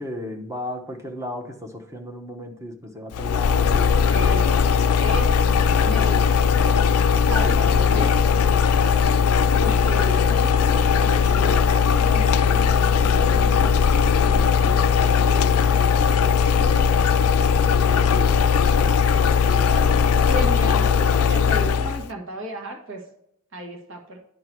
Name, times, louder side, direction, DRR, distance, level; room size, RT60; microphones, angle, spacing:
voice 1, 0.0-4.0 7.4-8.1 18.2-18.3 18.8-20.3 20.6-20.7, left 1 dB, 15° right, 3 dB, 0.9 m, -35 dB
sound 1, 3.1-22.0, left 6 dB, 80° left, 0.4 m, -19 dB
voice 2, 4.1-6.8 7.3-8.1 9.6-16.9 20.2-23.0 23.5-24.2, right 1 dB, 60° right, 1 dB, 1.6 m, -35 dB
10.5 x 3.8 x 4.5 m, 0.75 s
head